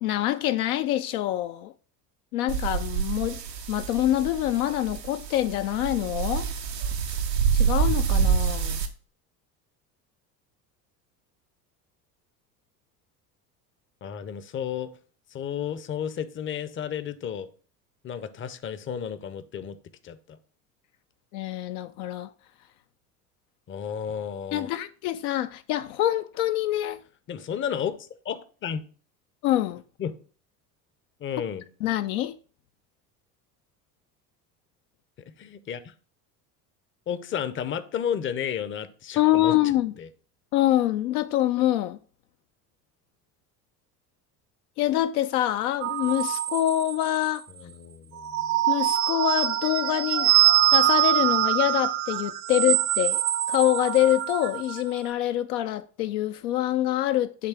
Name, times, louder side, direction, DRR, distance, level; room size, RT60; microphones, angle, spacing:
voice 1, 0.0-1.7 2.3-3.4 3.7-6.5 7.5-8.8 21.3-22.3 24.5-27.0 29.4-29.8 31.8-32.4 39.2-40.0 40.5-42.0 44.8-47.5 48.7-50.3 50.7-53.2 53.5-57.5, left 14 dB, 65° left, 0.5 m, -25 dB
sound 1, 2.5-8.9, right 7 dB, 90° right, 0.9 m, -27 dB
voice 2, 14.0-15.0 15.3-17.5 18.0-19.8 20.0-20.4 23.7-24.7 27.3-28.8 30.0-30.1 31.2-31.6 35.3-35.9 37.1-39.6 40.0-40.1 47.6-48.5, left 8 dB, 25° left, 0.6 m, -32 dB
sound 2, 45.8-47.3 48.2-54.8, right 13 dB, 45° right, 0.6 m, -24 dB
8.3 x 3.3 x 4.7 m
hypercardioid pair, 70°, 48 cm